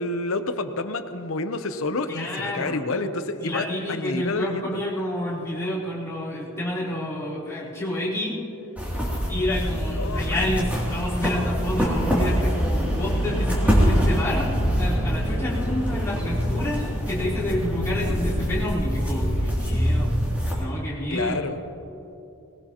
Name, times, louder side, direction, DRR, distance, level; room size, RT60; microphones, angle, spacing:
voice 1, 0.0-4.8 10.0-10.4 21.1-21.6, left 3 dB, 75° left, 9 dB, 0.8 m, -29 dB
voice 2, 2.1-2.8 3.5-8.4 9.3-20.1 20.5-21.4, left 1 dB, 15° left, -8 dB, 3.6 m, -29 dB
sound 1, 8.8-20.5, equal, 5° right, 2.8 m, -24 dB
20.0 x 17.5 x 3.0 m, 2.9 s
head